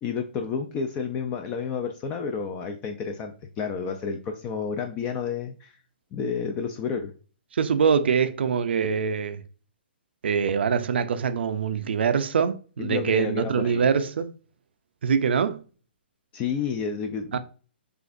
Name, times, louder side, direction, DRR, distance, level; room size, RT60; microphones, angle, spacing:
voice 1, 0.0-5.8 6.1-7.1 12.8-13.8 16.3-17.4, left 6 dB, 20° left, 0.4 m, -30 dB
voice 2, 7.5-9.4 10.2-14.3 15.0-15.6 17.3-17.4, right 6 dB, 75° right, 0.5 m, -24 dB
6.5 x 2.5 x 2.5 m
hypercardioid pair, 155°, 6 cm